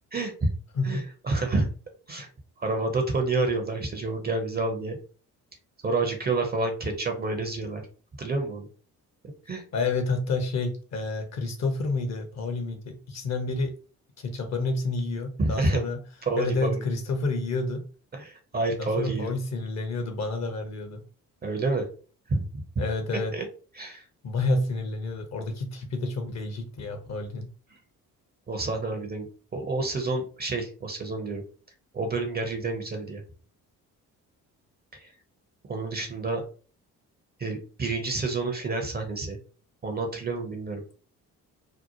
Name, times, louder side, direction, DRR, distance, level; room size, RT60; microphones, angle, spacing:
voice 1, 0.1-0.5 0.8-1.7 2.1-2.3 2.6-5.0 5.8-7.8 8.2-8.7 9.5-9.6 15.4-15.8 16.2-16.9 18.1-19.3 21.4-21.9 22.3-22.8 23.3-23.4 23.8-24.1 27.7-27.8 28.5-29.3 29.5-31.4 31.9-33.2 34.9-35.1 35.7-36.4 37.4-39.4 39.8-40.8, right 3 dB, 20° right, 3 dB, 0.6 m, -29 dB
voice 2, 9.7-13.7 14.2-16.0 16.4-17.8 18.8-21.0 22.8-23.3 24.2-27.5, left 3 dB, 35° left, 5 dB, 0.7 m, -29 dB
2.7 x 2.0 x 2.8 m, 0.39 s
figure-of-eight pair, 45°, 45 cm